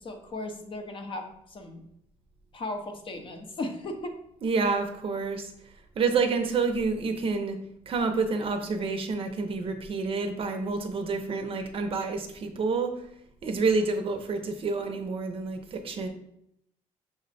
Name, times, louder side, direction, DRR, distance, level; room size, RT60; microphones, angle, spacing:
voice 1, 0.0-1.8 2.5-4.2, left 2 dB, 40° left, 4 dB, 0.7 m, -36 dB
voice 2, 4.4-5.5 6.0-7.6 7.9-12.9 13.4-16.1, right 4 dB, 45° right, 6 dB, 0.6 m, -28 dB
6.1 x 2.1 x 4.0 m, 0.76 s
cardioid pair, 120°, 14 cm